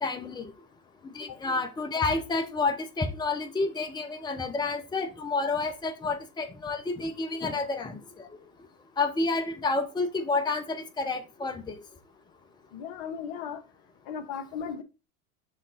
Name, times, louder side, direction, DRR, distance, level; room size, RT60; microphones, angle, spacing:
voice 1, 0.0-0.5 1.0-8.0 8.3-8.4 9.0-11.8, left 3 dB, 10° left, 0.8 m, -30 dB
voice 2, 12.7-13.6 14.1-14.8, left 7 dB, 50° left, 1.1 m, -36 dB
6.4 x 3.7 x 4.0 m
hypercardioid pair, 85°, 43 cm